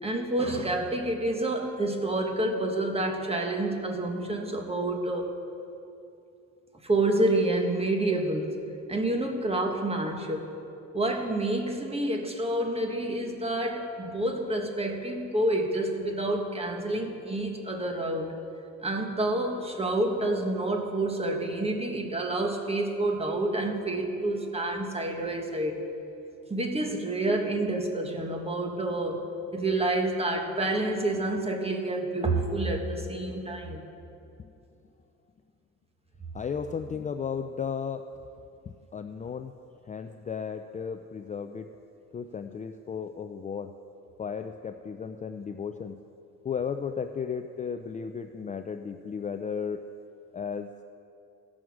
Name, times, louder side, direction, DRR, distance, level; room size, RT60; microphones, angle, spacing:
voice 1, 0.0-5.3 6.8-8.5 8.9-10.5 10.9-18.3 18.8-25.8 26.5-33.8, right 1 dB, 20° right, 3 dB, 1.4 m, -28 dB
voice 2, 36.3-38.0 38.7-39.5 39.9-41.7 42.1-43.7 44.2-46.0 46.4-49.8 50.3-50.7, left 6 dB, 25° left, 7 dB, 0.4 m, -34 dB
17.0 x 6.3 x 4.8 m, 2.7 s
cardioid pair, 90°, 30 cm